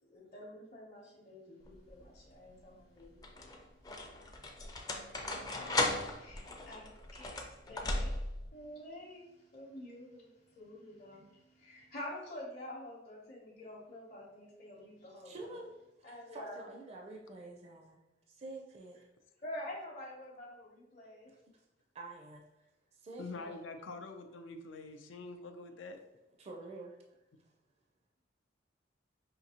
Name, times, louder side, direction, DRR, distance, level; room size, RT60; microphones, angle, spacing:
voice 1, 0.1-3.5 5.2-5.3 6.2-8.2 8.5-15.3 16.0-16.6 19.4-21.3, left 1 dB, 45° left, -7 dB, 0.8 m, -48 dB
sound 1, 1.7-2.1 3.0-8.5, left 2 dB, 20° left, 0.4 m, -37 dB
voice 2, 15.2-15.7 16.0-18.0 18.3-19.1 21.3-21.6 21.9-23.6 26.4-27.2, right 2 dB, 35° right, 1 dB, 0.4 m, -48 dB
voice 3, 23.2-26.0, left 3 dB, 80° left, 7 dB, 0.5 m, -45 dB
5.1 x 2.7 x 2.8 m, 0.93 s
head